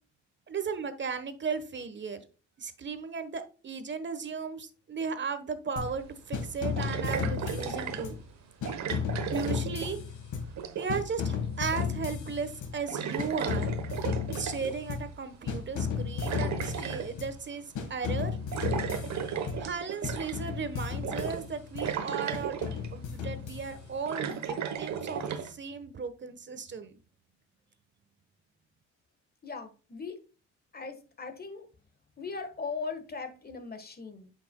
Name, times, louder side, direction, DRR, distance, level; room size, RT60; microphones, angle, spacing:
voice 1, 0.5-2.2 2.6-8.2 9.3-10.0 10.8-13.7 14.3-18.3 19.6-22.6 22.9-26.9, right 5 dB, 40° right, 1.2 m, -36 dB
sound 1, 5.8-6.0 6.3-8.3 8.6-10.6 10.9-12.8 13.2-15.2 15.5-17.4 17.8-19.8 20.0-21.9 22.3-24.0, left 6 dB, 80° left, 1.7 m, -34 dB
sound 2, 5.8-5.9 6.8-8.1 8.7-10.2 10.4-11.0 11.7-12.1 12.4-12.6 12.9-14.8 15.8-17.1 18.5-20.5 21.0-21.5 21.8-22.9 23.6-25.5, right 7 dB, 65° right, 1.1 m, -35 dB
voice 2, 29.4-30.2 30.7-31.7 32.2-34.3, left 4 dB, 30° left, 1.4 m, -39 dB
8.5 x 6.0 x 2.3 m
cardioid pair, 90°, 30 cm